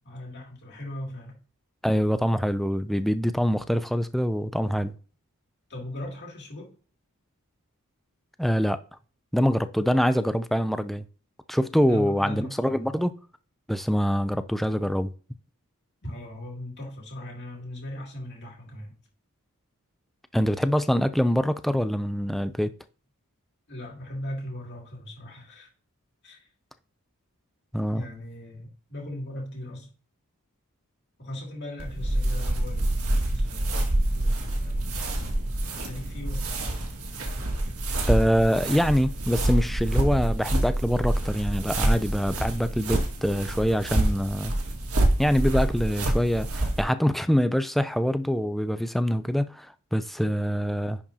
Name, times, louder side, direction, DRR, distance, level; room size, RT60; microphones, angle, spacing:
voice 1, 0.0-1.4 5.7-6.7 11.8-12.9 16.0-18.9 23.7-25.7 26.2-26.5 27.9-29.9 31.2-33.7 34.1-35.2 35.9-36.8, left 1 dB, 50° left, 2.5 m, -39 dB
voice 2, 1.8-5.0 8.4-8.8 9.3-11.1 11.5-13.1 13.7-15.1 20.3-22.7 27.7-28.0 38.1-44.5 45.2-51.0, equal, ahead, 0.4 m, -24 dB
sound 1, 31.8-46.8, right 1 dB, 85° right, 1.9 m, -27 dB
10.5 x 4.9 x 2.8 m
head